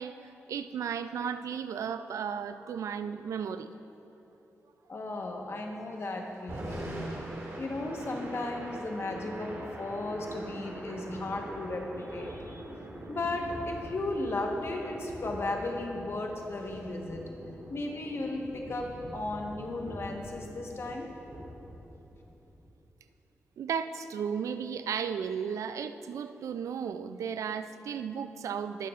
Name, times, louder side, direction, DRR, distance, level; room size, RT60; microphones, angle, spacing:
voice 1, 0.0-3.7 23.6-28.9, right 7 dB, 90° right, 11 dB, 0.3 m, -34 dB
voice 2, 4.9-7.1 7.6-12.6 13.1-17.3 17.7-21.1, left 2 dB, 55° left, 1 dB, 1.2 m, -35 dB
Thunder / Rain, 6.3-22.6, right 1 dB, 65° right, 2.2 m, -43 dB
20.0 x 6.9 x 2.5 m, 3.0 s
cardioid pair, 60°, 5 cm